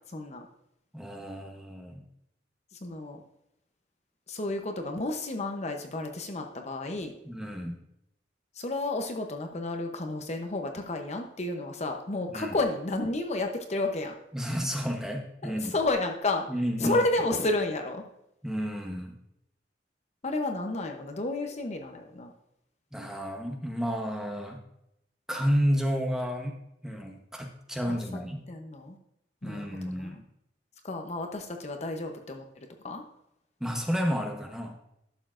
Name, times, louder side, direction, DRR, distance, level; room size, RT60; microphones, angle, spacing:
voice 1, 0.1-0.4 2.7-3.2 4.3-7.1 8.6-14.1 15.4-16.5 16.8-18.0 20.2-22.3 27.9-28.2 28.5-29.0 29.4-30.2 30.8-32.4 32.8-33.0, left 2 dB, 40° left, 4 dB, 0.7 m, -31 dB
voice 2, 0.9-2.0 7.2-7.8 12.3-12.6 14.3-15.7 16.5-17.0 18.4-19.2 22.9-24.6 25.3-28.5 29.4-30.2 33.6-34.7, equal, 5° right, 2 dB, 0.9 m, -31 dB
11.5 x 7.0 x 2.5 m, 0.80 s
head